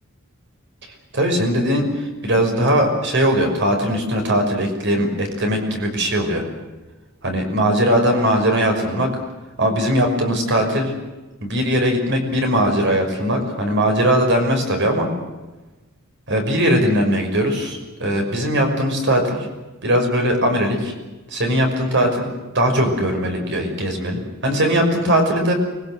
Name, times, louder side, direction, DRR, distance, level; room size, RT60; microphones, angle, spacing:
voice 1, 1.1-6.5 7.2-9.1 9.6-10.9 11.4-15.1 16.3-19.5 19.8-20.9 21.3-22.3 22.5-25.5, equal, 60° right, 4 dB, 5.9 m, -19 dB
25.0 x 22.0 x 7.9 m, 1.2 s
head